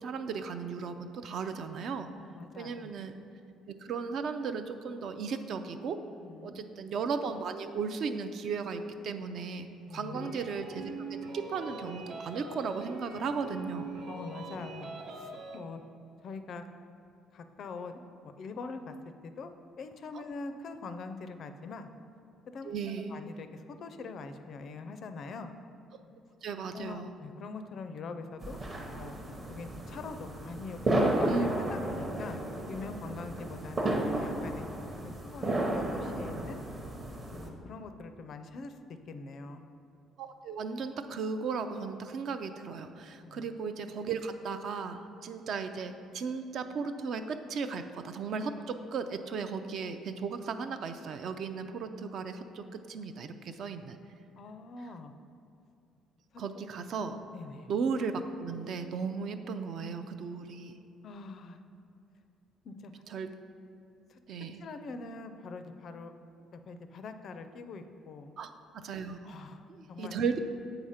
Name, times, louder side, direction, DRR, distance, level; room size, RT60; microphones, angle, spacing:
voice 1, 0.0-2.1 2.6-3.1 3.7-6.0 6.4-13.9 20.1-20.2 22.6-23.1 26.4-27.1 31.2-31.9 40.2-54.0 56.4-57.2 57.7-60.8 63.1-63.3 64.3-64.6 68.4-69.4 69.7-70.4, right 5 dB, 45° right, 9 dB, 0.4 m, -36 dB
voice 2, 2.2-2.9 6.2-6.7 9.8-10.3 14.1-14.9 15.2-15.8 16.2-16.6 17.3-18.9 19.2-19.5 19.8-21.9 22.5-22.7 23.1-25.5 26.7-28.6 28.9-29.2 29.5-30.8 31.2-32.4 32.7-34.7 35.0-36.6 37.3-39.6 43.2-43.4 54.4-55.1 57.3-57.7 61.0-61.6 62.6-62.9 64.1-64.2 64.6-66.1 66.5-68.3 69.2-69.6 69.9-70.1, left 4 dB, 40° left, 8 dB, 0.4 m, -43 dB
sound 1, 10.1-15.6, right 3 dB, 65° right, 0.9 m, -42 dB
sound 2, 28.4-37.5, right 1 dB, 20° right, 0.7 m, -33 dB
7.8 x 4.9 x 5.6 m, 2.6 s
cardioid pair, 175°, 0 cm